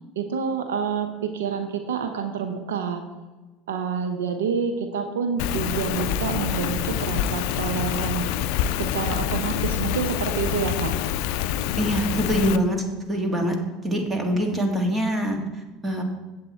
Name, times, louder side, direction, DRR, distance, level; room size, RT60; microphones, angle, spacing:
voice 1, 0.2-3.0 3.7-8.3 8.8-10.9, right 6 dB, 90° right, 7 dB, 0.7 m, -28 dB
Rain, 5.4-12.6, left 10 dB, 70° left, 0.4 m, -26 dB
voice 2, 11.8-13.6 13.8-16.0, equal, 20° right, 3 dB, 1.9 m, -24 dB
7.9 x 7.7 x 4.3 m, 1.2 s
hypercardioid pair, 90°, 0 cm